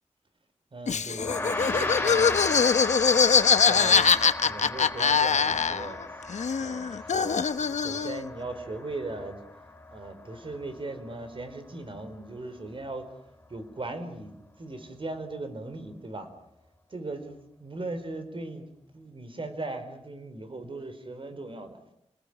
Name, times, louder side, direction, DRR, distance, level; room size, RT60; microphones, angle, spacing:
voice 1, 0.7-2.4 3.3-4.2 4.4-6.2 6.6-9.4 9.9-13.1 13.5-16.3 16.9-21.8, right 2 dB, 50° right, 9 dB, 4.3 m, -38 dB
Laughter, 0.9-6.0 6.3-8.2, left 6 dB, 90° left, 1.0 m, -23 dB
Gong, 1.2-10.8, left 2 dB, 15° left, 6.4 m, -35 dB
29.5 x 20.0 x 10.0 m, 0.78 s
wide cardioid pair, 115°, 12 cm